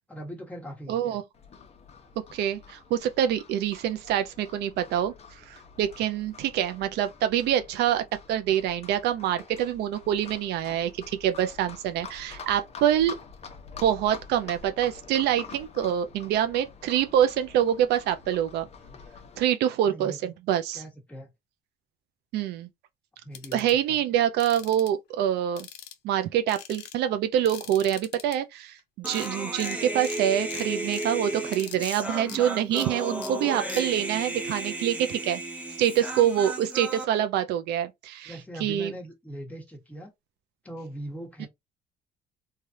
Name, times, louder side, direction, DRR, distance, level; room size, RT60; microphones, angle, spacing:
voice 1, 0.1-1.2 19.9-20.3 20.7-21.3 23.2-24.0 38.2-40.1 40.6-41.5, right 1 dB, 10° left, 1.2 m, -40 dB
voice 2, 0.9-1.2 2.3-5.1 5.5-13.1 13.8-18.7 19.4-20.8 22.3-22.7 23.5-25.7 26.0-35.4 35.8-38.3 38.6-38.9 41.4-41.5, right 10 dB, 80° right, 0.5 m, -26 dB
Livestock farm animals working animals, 1.3-19.4, left 5 dB, 40° left, 0.7 m, -47 dB
sound 1, 23.3-23.7 24.4-24.9 25.6-26.2 26.5-27.0 27.5-28.4 28.8-28.9 29.1-29.3 29.6-29.8 30.0-30.2 30.5-31.1 31.5-32.0 32.3-32.4 32.8-32.9 33.2-33.3 33.7-33.8, left 10 dB, 80° left, 0.6 m, -42 dB
Human voice, 29.0-37.0, right 1 dB, 10° right, 0.7 m, -34 dB
3.2 x 2.3 x 2.6 m
cardioid pair, 110°, 17 cm